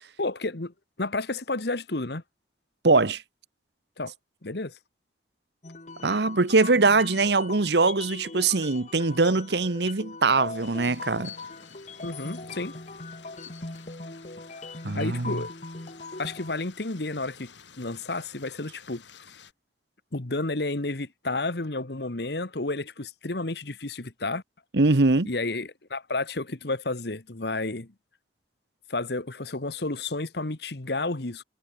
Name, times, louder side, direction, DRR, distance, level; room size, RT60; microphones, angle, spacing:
voice 1, 0.2-2.2 4.0-4.1 4.4-4.7 12.0-12.7 14.9-15.5 16.2-17.5 17.8-19.3 20.1-24.4 25.2-27.9 28.9-31.4, left 2 dB, 60° left, 1.5 m, -31 dB
voice 2, 2.8-3.2 6.0-11.3 14.8-15.4 24.7-25.3, right 3 dB, 65° right, 1.0 m, -22 dB
sound 1, 5.6-16.5, left 3 dB, 40° left, 1.7 m, -40 dB
sound 2, 10.5-19.5, left 6 dB, 85° left, 3.8 m, -52 dB
head